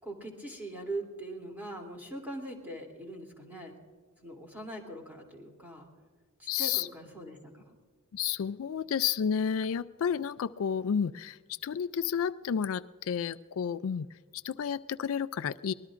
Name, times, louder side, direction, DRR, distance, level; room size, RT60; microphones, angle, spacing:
voice 1, 0.0-3.7 4.2-5.9 6.4-7.8, right 1 dB, 10° right, 0 dB, 3.0 m, -41 dB
voice 2, 6.5-6.9 8.1-14.1 14.3-15.7, left 7 dB, 65° left, 15 dB, 0.3 m, -31 dB
24.5 x 20.0 x 2.5 m, 1.5 s
head